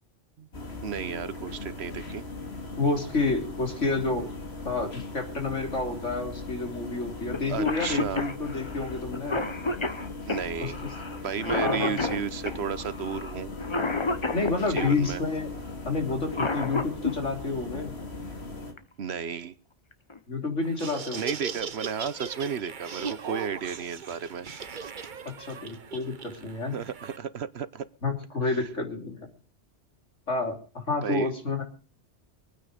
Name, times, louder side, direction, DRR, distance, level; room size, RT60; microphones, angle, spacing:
sound 1, 0.5-18.7, left 3 dB, 60° left, 2.7 m, -39 dB
voice 1, 0.8-2.2 7.5-8.3 10.3-10.8 11.1-13.5 14.7-15.2 19.0-19.5 21.1-24.5 26.7-27.9 28.5-28.6 31.0-31.3, right 7 dB, 65° right, 15 dB, 1.1 m, -33 dB
voice 2, 2.8-4.3 4.7-9.4 10.6-10.7 11.6-12.0 14.3-15.5 15.9-17.9 20.3-21.2 25.3-26.8 28.0-29.3 30.3-31.6, left 3 dB, 85° left, 3 dB, 3.7 m, -29 dB
Cough, 7.3-7.4 7.6-15.0 16.1-17.1 18.8-18.9 19.9-20.2 20.6-20.7 21.1-21.6, left 2 dB, 25° left, 1.1 m, -30 dB
Laughter, 20.6-27.2, right 6 dB, 45° right, 1.0 m, -38 dB
23.5 x 9.4 x 5.1 m, 0.37 s
omnidirectional pair, 1.2 m